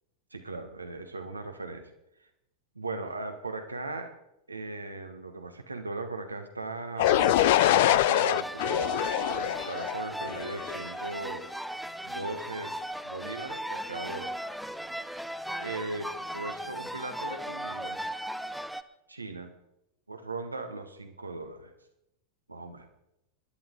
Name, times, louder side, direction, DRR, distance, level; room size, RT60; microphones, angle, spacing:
voice 1, 0.3-1.9 2.2-2.3 2.7-4.1 4.5-11.5 12.0-12.8 13.0-14.3 15.6-18.0 19.1-19.5 20.1-21.7 22.5-22.9, right 2 dB, 85° right, 6 dB, 1.6 m, -38 dB
sound 1, 7.0-10.9, left 15 dB, 55° left, 0.4 m, -24 dB
sound 2, 7.0-18.8, right 1 dB, ahead, 0.8 m, -36 dB
26.5 x 11.0 x 3.9 m, 0.86 s
figure-of-eight pair, 90°, 0 cm